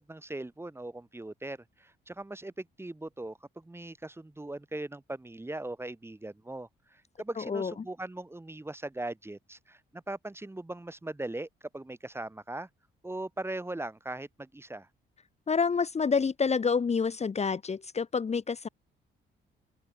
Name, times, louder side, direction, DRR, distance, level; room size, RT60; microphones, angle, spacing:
voice 1, 0.0-12.7 13.0-14.9, right 2 dB, 10° right, 2.6 m, -40 dB
voice 2, 7.4-7.7 15.5-18.7, left 5 dB, 35° left, 1.5 m, -28 dB
open air
cardioid pair, 90°, 20 cm